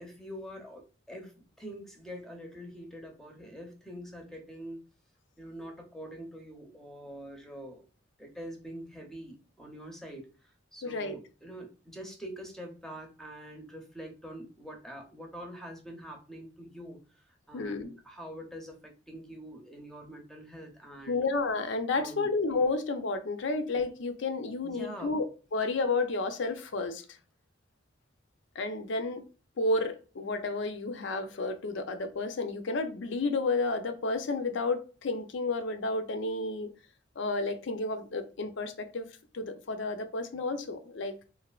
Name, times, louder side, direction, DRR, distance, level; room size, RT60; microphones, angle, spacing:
voice 1, 0.0-4.8 5.4-7.8 8.2-21.2 21.9-22.3 24.6-25.2, equal, ahead, 2 dB, 0.6 m, -45 dB
voice 2, 10.8-11.2 17.5-17.9 21.1-25.3 25.5-27.0 28.6-29.2 29.6-36.7 37.2-39.1 39.3-41.2, left 3 dB, 65° left, 9 dB, 0.5 m, -31 dB
3.2 x 2.5 x 2.3 m, 0.36 s
head